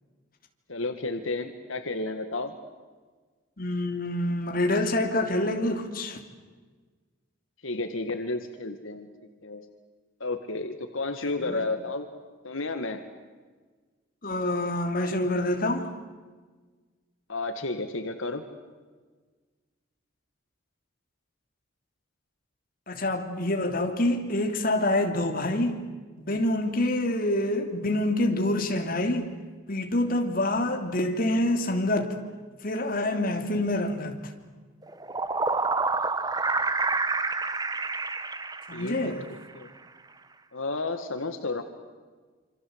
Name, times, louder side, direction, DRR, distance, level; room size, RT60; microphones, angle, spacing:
voice 1, 0.7-2.5 7.6-9.1 9.4-9.6 10.2-12.1 12.4-13.0 17.3-18.4 38.7-39.7 40.5-41.6, left 2 dB, 75° left, 2.0 m, -32 dB
voice 2, 3.6-6.2 11.2-11.6 14.2-15.9 22.9-25.8 26.2-29.3 29.7-32.1 32.6-34.3 38.7-39.2, left 1 dB, 45° left, 3.1 m, -26 dB
sound 1, 34.8-39.3, right 3 dB, 20° right, 1.0 m, -28 dB
27.5 x 26.5 x 8.1 m
head